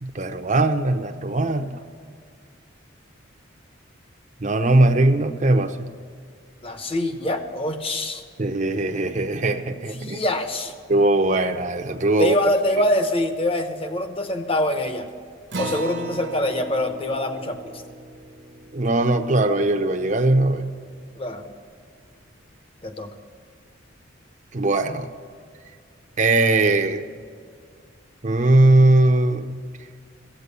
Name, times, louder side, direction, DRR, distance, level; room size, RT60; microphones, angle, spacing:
voice 1, 0.0-1.8 4.4-5.9 8.4-10.2 10.9-12.4 18.7-20.7 24.5-25.1 26.2-27.0 28.2-29.5, right 2 dB, 40° right, 7 dB, 0.7 m, -20 dB
voice 2, 6.6-8.2 10.0-10.7 12.2-15.1 15.6-17.7 21.2-21.5 22.8-23.1, left 1 dB, 30° left, 7 dB, 0.9 m, -24 dB
Acoustic guitar, 15.5-20.4, right 2 dB, 60° right, 1.0 m, -37 dB
14.5 x 8.8 x 6.8 m, 2.1 s
head